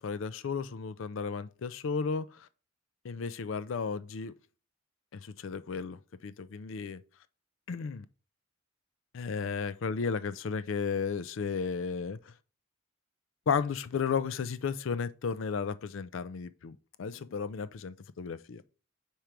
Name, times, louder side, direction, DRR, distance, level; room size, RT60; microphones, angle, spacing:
voice 1, 0.0-2.5 3.0-4.3 5.1-7.0 7.7-8.1 9.1-12.3 13.5-18.6, left 5 dB, 65° left, 0.4 m, -34 dB
4.6 x 4.4 x 5.1 m
head